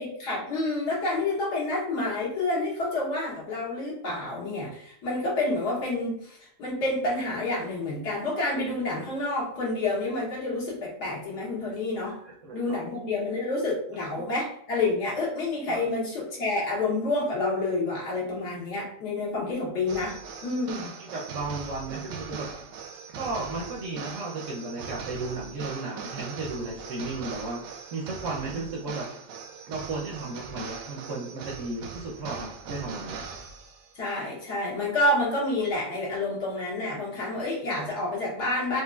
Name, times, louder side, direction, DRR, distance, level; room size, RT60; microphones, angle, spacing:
voice 1, 0.0-12.2 12.5-21.0 34.0-38.8, left 2 dB, 75° left, -6 dB, 1.9 m, -29 dB
voice 2, 12.2-12.8 14.2-14.3 15.7-15.8 21.0-22.5 23.2-27.6 27.9-29.1 29.7-33.2, right 3 dB, 60° right, -2 dB, 0.8 m, -34 dB
sound 1, 19.9-33.9, right 5 dB, 85° right, 1.2 m, -40 dB
4.6 x 2.5 x 2.3 m, 0.67 s
omnidirectional pair, 1.8 m